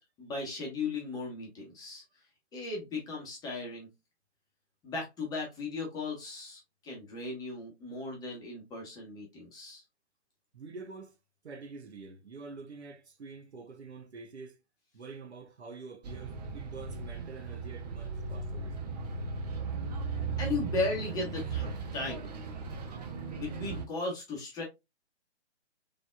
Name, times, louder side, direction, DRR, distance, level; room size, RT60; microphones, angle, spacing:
voice 1, 0.2-2.0 2.5-3.9 4.8-9.8 20.4-22.3 23.4-24.6, left 3 dB, 10° left, 1.0 m, -36 dB
voice 2, 10.5-11.2 11.4-14.6 14.9-18.8, right 4 dB, 70° right, 0.8 m, -46 dB
Bus, 16.0-23.9, right 4 dB, 35° right, 0.6 m, -37 dB
3.9 x 3.4 x 2.3 m
figure-of-eight pair, 125°, 35 cm